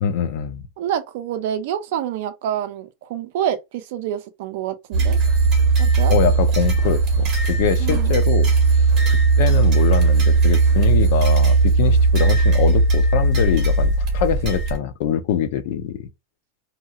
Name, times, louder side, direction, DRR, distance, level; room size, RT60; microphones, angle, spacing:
voice 1, 0.0-0.6 6.1-16.1, left 8 dB, 55° left, 0.5 m, -24 dB
voice 2, 0.8-5.2 5.8-6.1 7.8-8.1, right 10 dB, 55° right, 0.5 m, -27 dB
sound 1, 4.9-14.8, right 3 dB, 25° right, 1.5 m, -17 dB
2.8 x 2.7 x 2.3 m
supercardioid pair, 170°, 0 cm